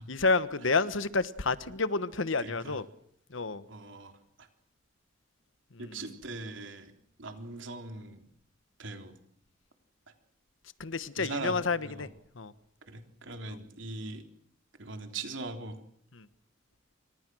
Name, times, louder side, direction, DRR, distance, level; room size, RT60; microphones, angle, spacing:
voice 1, 0.1-2.9 3.3-3.6 5.7-6.1 10.8-12.1 12.3-12.5 13.5-13.6 16.1-16.3, left 3 dB, 80° left, 1.3 m, -30 dB
voice 2, 2.4-2.8 3.7-4.1 4.4-4.5 5.8-6.9 7.2-8.2 8.8-9.1 11.2-11.6 11.8-12.1 12.9-14.2 14.8-15.8, right 3 dB, 75° right, 3.6 m, -40 dB
28.5 x 25.5 x 6.3 m
head